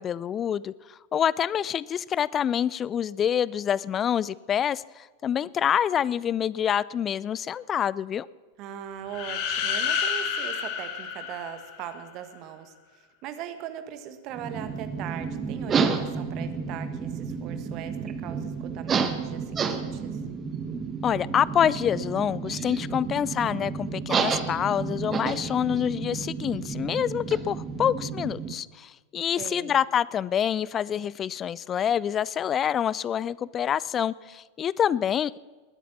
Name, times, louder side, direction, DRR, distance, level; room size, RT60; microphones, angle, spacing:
voice 1, 0.0-8.3 21.0-35.4, left 9 dB, 25° left, 21 dB, 0.4 m, -26 dB
voice 2, 8.6-12.7 13.2-20.2 29.4-29.8, right 9 dB, 40° right, 10 dB, 1.6 m, -40 dB
sound 1, 9.1-12.0, left 7 dB, 45° left, 2.2 m, -29 dB
sound 2, 14.3-28.5, right 6 dB, 20° right, 1.3 m, -31 dB
20.5 x 9.2 x 7.3 m, 1.3 s
figure-of-eight pair, 90°, 0 cm